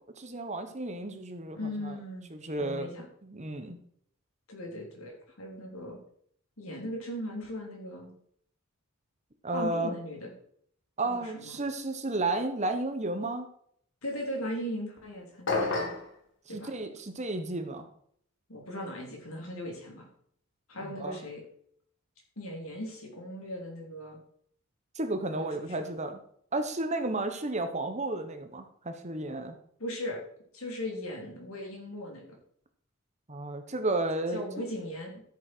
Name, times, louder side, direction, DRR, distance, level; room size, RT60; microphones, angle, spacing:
voice 1, 0.2-1.9 2.3-2.9 3.2-3.8 9.4-9.9 11.0-13.5 16.5-17.9 20.8-21.3 24.9-26.2 26.5-29.5 33.3-34.4, right 2 dB, 30° right, 7 dB, 1.2 m, -32 dB
voice 2, 1.5-2.3 2.6-3.1 4.5-6.0 6.6-8.1 9.5-10.3 11.0-11.6 14.0-15.9 16.5-16.7 18.5-20.1 20.7-21.4 22.4-24.2 25.3-25.9 29.8-30.2 30.5-32.2 34.3-35.2, left 1 dB, 75° left, 0 dB, 3.8 m, -38 dB
sound 1, 15.5-16.1, left 3 dB, 55° left, 2.6 m, -28 dB
13.5 x 7.6 x 4.6 m, 0.64 s
head